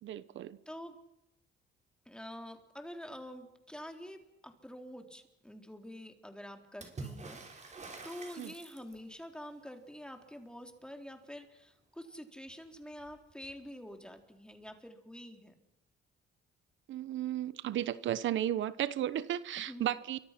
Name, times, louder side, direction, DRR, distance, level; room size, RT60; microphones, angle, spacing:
voice 1, 0.0-0.6 8.4-8.5 16.9-20.2, right 11 dB, 75° right, 16 dB, 1.0 m, -34 dB
voice 2, 0.7-1.0 2.1-15.5 19.7-19.9, equal, 5° left, 4 dB, 3.6 m, -47 dB
Water / Splash splatter, 6.8-9.2 12.5-12.6 12.8-13.6 14.7-14.8, right 3 dB, 35° right, 5.7 m, -47 dB
28.5 x 24.5 x 6.0 m, 0.85 s
cardioid pair, 90°, 20 cm